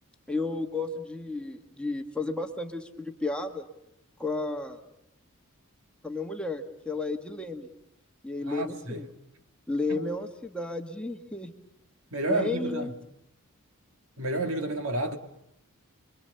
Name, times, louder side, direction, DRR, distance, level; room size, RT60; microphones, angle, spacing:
voice 1, 0.3-3.7 4.2-4.8 6.0-7.7 8.2-9.1 9.7-11.5 12.3-12.9, left 3 dB, 5° left, 1.5 m, -32 dB
voice 2, 8.4-9.1 9.9-10.0 12.1-12.9 14.2-15.2, right 2 dB, 65° right, 2.2 m, -30 dB
29.0 x 23.0 x 6.8 m
head